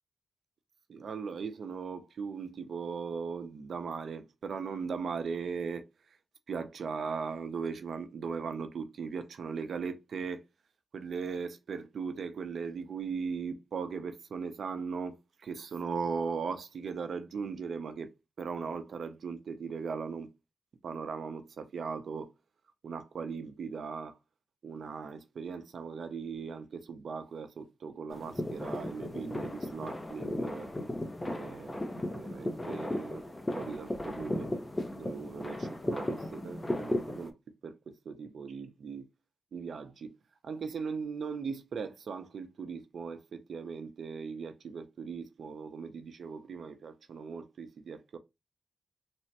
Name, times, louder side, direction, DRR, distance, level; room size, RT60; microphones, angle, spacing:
voice 1, 0.9-5.9 6.5-10.4 10.9-18.1 18.4-20.3 20.8-22.3 22.8-24.2 24.6-30.7 31.2-33.2 33.5-34.5 34.8-37.3 37.6-39.1 39.5-40.1 40.4-48.2, right 5 dB, 75° right, 0.5 m, -38 dB
sound 1, 28.1-37.3, left 1 dB, 20° left, 0.5 m, -36 dB
3.2 x 2.1 x 2.7 m
cardioid pair, 85°, 0 cm